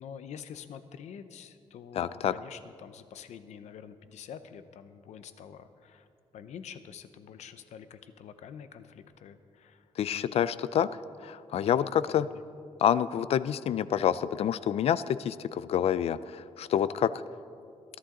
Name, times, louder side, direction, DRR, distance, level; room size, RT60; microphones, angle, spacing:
voice 1, 0.0-6.1 6.3-10.6 11.8-12.4, left 8 dB, 85° left, 11 dB, 0.8 m, -47 dB
voice 2, 2.0-2.3 10.0-10.9 11.2-12.3 12.8-17.1, left 9 dB, 60° left, 16 dB, 0.4 m, -27 dB
21.0 x 11.5 x 3.8 m, 2.4 s
wide cardioid pair, 145°, 11 cm